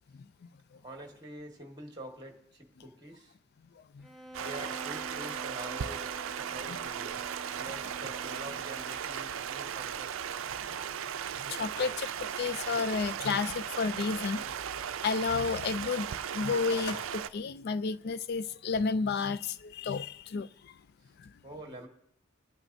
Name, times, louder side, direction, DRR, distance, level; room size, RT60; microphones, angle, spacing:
voice 1, 0.8-3.3 4.4-7.2 7.6-10.1 11.5-11.6 21.4-21.9, right 1 dB, 20° right, 1.6 m, -46 dB
Bowed string instrument, 4.0-9.1, right 1 dB, ahead, 0.6 m, -47 dB
Stream, 4.3-17.3, right 8 dB, 75° right, 0.4 m, -37 dB
voice 2, 11.5-14.4 15.0-20.5 21.2-21.3, left 5 dB, 50° left, 0.3 m, -31 dB
sound 1, 11.7-12.1 12.5-12.6 16.3-17.1, left 2 dB, 85° left, 1.6 m, -40 dB
26.5 x 9.1 x 2.7 m
head